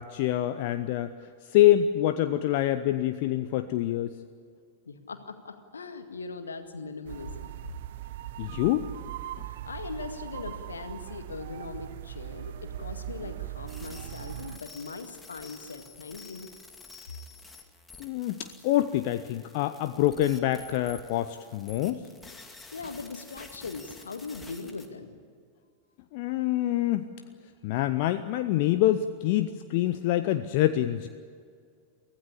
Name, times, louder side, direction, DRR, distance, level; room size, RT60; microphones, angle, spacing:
voice 1, 0.0-4.1 8.4-8.9 9.4-9.5 18.0-22.1 26.1-27.1 27.6-31.1, left 13 dB, 50° left, 10 dB, 0.8 m, -26 dB
voice 2, 4.9-7.5 9.5-16.5 22.7-25.2, left 4 dB, 75° left, 8 dB, 2.0 m, -40 dB
sound 1, 7.0-14.6, right 13 dB, 55° right, 0.6 m, -40 dB
sound 2, 13.7-24.9, left 3 dB, 10° left, 2.4 m, -50 dB
24.0 x 16.0 x 10.0 m, 2.2 s
figure-of-eight pair, 90°, 0 cm